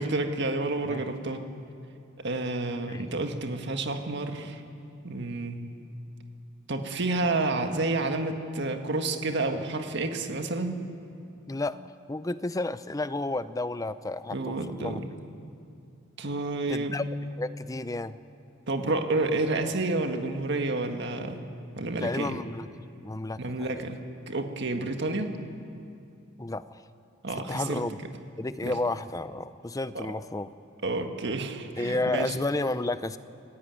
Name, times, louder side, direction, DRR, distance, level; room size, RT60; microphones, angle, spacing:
voice 1, 0.0-1.4 2.2-4.6 5.0-5.7 6.7-10.8 14.3-15.1 16.2-17.0 18.7-21.4 21.7-22.4 23.4-24.0 24.3-25.3 27.2-27.8 28.6-28.7 29.9-30.1 30.8-32.3, right 2 dB, 55° right, 5 dB, 1.7 m, -30 dB
voice 2, 11.5-11.8 12.1-15.0 16.7-17.1 17.4-18.2 22.0-22.7 23.0-23.9 26.4-26.8 27.5-28.0 28.4-30.5 31.8-33.2, left 2 dB, 15° left, 14 dB, 0.5 m, -31 dB
26.5 x 15.0 x 9.1 m, 2.6 s
head